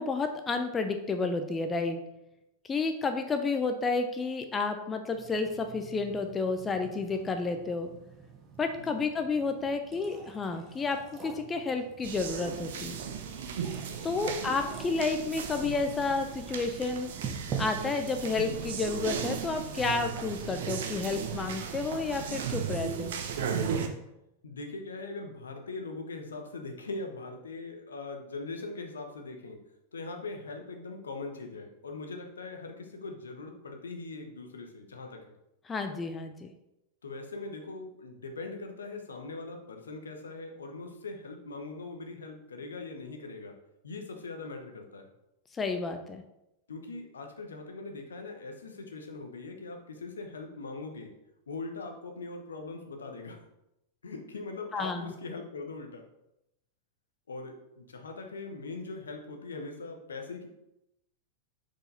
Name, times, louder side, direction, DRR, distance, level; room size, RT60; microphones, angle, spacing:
voice 1, 0.0-2.0 2.6-7.9 8.6-13.0 14.0-17.1 17.6-23.2 35.7-36.5 45.5-46.2 54.7-55.1, left 4 dB, 20° left, 6 dB, 0.5 m, -31 dB
sound 1, 5.1-21.4, right 6 dB, 30° right, 1.1 m, -46 dB
sound 2, 12.0-23.9, right 7 dB, 55° right, 0.8 m, -36 dB
voice 2, 14.1-14.5 24.4-29.6 29.9-35.2 37.0-43.5 43.8-45.1 46.7-51.1 51.5-53.4 54.0-56.0 57.3-60.5, left 3 dB, 70° left, 4 dB, 1.0 m, -41 dB
6.6 x 4.9 x 4.0 m, 0.87 s
figure-of-eight pair, 90°, 0 cm